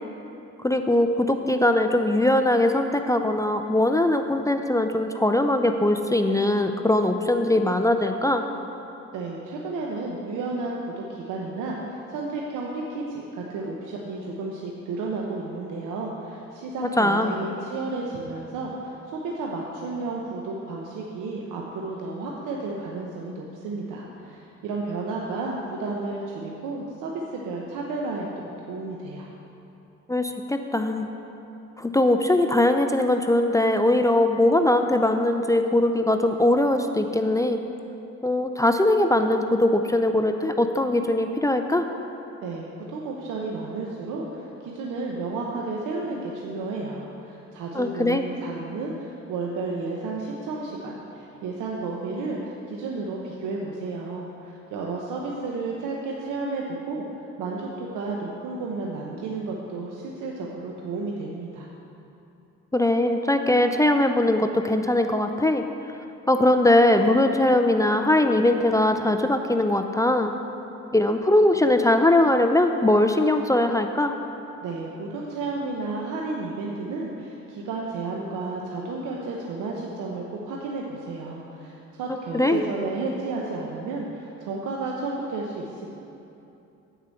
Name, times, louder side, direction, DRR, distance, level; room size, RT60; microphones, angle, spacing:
voice 1, 0.6-8.4 17.0-17.3 30.1-31.1 31.8-37.6 38.2-41.9 47.7-48.2 62.7-65.7 66.3-70.3 70.9-74.2 82.3-82.6, left 1 dB, 10° left, 6 dB, 0.4 m, -21 dB
voice 2, 9.1-29.3 42.4-57.0 57.4-61.7 74.6-85.9, right 3 dB, 90° right, -2 dB, 0.9 m, -32 dB
9.0 x 4.9 x 7.6 m, 2.8 s
cardioid pair, 90°, 30 cm